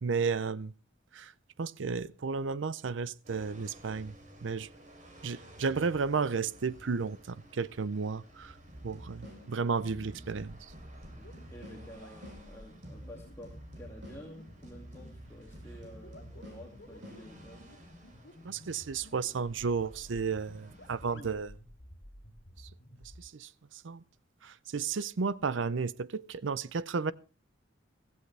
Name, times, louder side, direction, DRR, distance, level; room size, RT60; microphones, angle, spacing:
voice 1, 0.0-0.7 1.1-1.3 1.6-4.1 4.4-4.7 5.2-8.6 8.8-10.6 18.4-21.5 22.6-22.7 23.2-24.0 24.4-27.1, right 5 dB, 85° right, 0.6 m, -33 dB
sound 1, 3.2-21.2, right 1 dB, 40° right, 3.6 m, -56 dB
sound 2, 8.7-17.8, equal, 70° right, 6.3 m, -50 dB
sound 3, 9.9-23.2, left 1 dB, 65° left, 3.4 m, -53 dB
voice 2, 11.1-17.7 18.0-18.1 21.1-21.3, equal, 15° left, 2.4 m, -50 dB
16.0 x 15.5 x 3.4 m
head